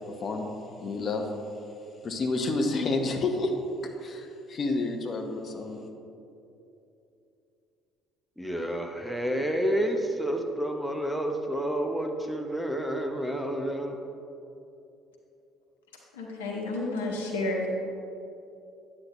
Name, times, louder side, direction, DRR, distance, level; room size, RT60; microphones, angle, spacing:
voice 1, 0.1-1.3 2.0-3.5 4.0-5.8, left 3 dB, 40° left, 4 dB, 1.0 m, -30 dB
voice 2, 8.4-14.0, right 1 dB, ahead, 3 dB, 0.9 m, -29 dB
voice 3, 16.1-17.7, left 2 dB, 80° left, -1 dB, 1.1 m, -31 dB
9.6 x 8.5 x 3.1 m, 2.8 s
hypercardioid pair, 55°, 0 cm